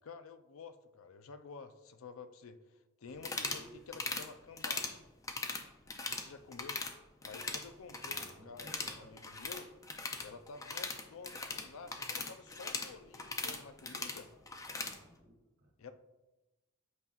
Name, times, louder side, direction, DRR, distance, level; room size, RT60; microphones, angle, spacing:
voice 1, 0.0-2.6 3.0-5.0 6.1-6.8 7.2-9.7 10.2-14.3 15.8-15.9, left 4 dB, 80° left, 9 dB, 0.5 m, -51 dB
sound 1, 3.2-3.6 3.9-4.3 4.6-4.9 5.2-6.3 6.5-6.9 7.2-8.3 8.6-15.0, left 3 dB, 15° left, 0.5 m, -39 dB
voice 2, 3.2-4.1 8.0-9.1 14.7-15.7, right 1 dB, 70° right, -2 dB, 2.3 m, -57 dB
8.2 x 5.4 x 2.4 m, 1.0 s
head